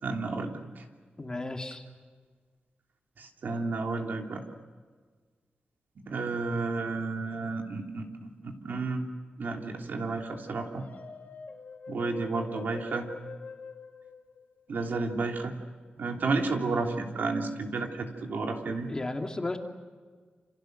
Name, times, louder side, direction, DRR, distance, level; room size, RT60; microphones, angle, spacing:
voice 1, 0.0-0.8 3.2-4.4 6.1-9.0 9.4-10.8 11.9-13.1 14.7-15.5 16.0-18.9, right 3 dB, 65° right, 2 dB, 3.2 m, -32 dB
voice 2, 1.2-1.8 18.9-19.6, left 2 dB, 20° left, 3 dB, 2.4 m, -34 dB
sound 1, 10.7-15.0, left 5 dB, 55° left, 2.9 m, -45 dB
29.0 x 27.5 x 6.6 m, 1.5 s
wide cardioid pair, 145°, 3 cm